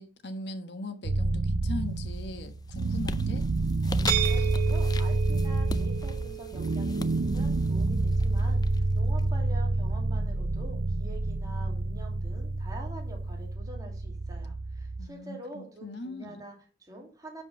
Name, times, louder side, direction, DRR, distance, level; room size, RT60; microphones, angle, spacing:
voice 1, 0.0-3.5 15.0-16.4, left 2 dB, 75° left, 1.3 m, -39 dB
sound 1, 1.0-15.1, right 2 dB, 90° right, 0.6 m, -28 dB
sound 2, 1.7-2.2 2.6-9.2, left 3 dB, 20° left, 0.5 m, -40 dB
voice 2, 4.0-17.4, right 1 dB, 20° right, 2.7 m, -46 dB
sound 3, 4.1-9.8, right 14 dB, 50° right, 1.3 m, -36 dB
11.0 x 4.9 x 5.5 m
head